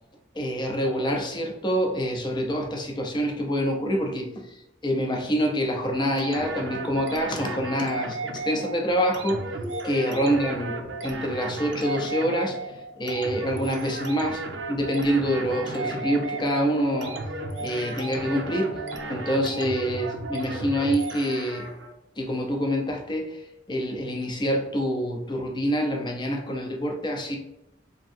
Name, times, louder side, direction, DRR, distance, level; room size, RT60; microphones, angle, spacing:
voice 1, 0.3-4.5 4.8-8.2 8.4-9.5 9.8-12.6 13.0-14.4 14.7-17.2 17.6-18.8 19.1-21.7 22.2-27.4, equal, 25° left, 1 dB, 0.6 m, -26 dB
sound 1, 6.2-21.9, right 3 dB, 75° right, 0.5 m, -35 dB
sound 2, 9.5-12.4, equal, 10° right, 1.0 m, -41 dB
Brass instrument, 15.3-19.5, right 1 dB, 70° left, 0.8 m, -40 dB
3.0 x 2.6 x 2.6 m, 0.87 s
head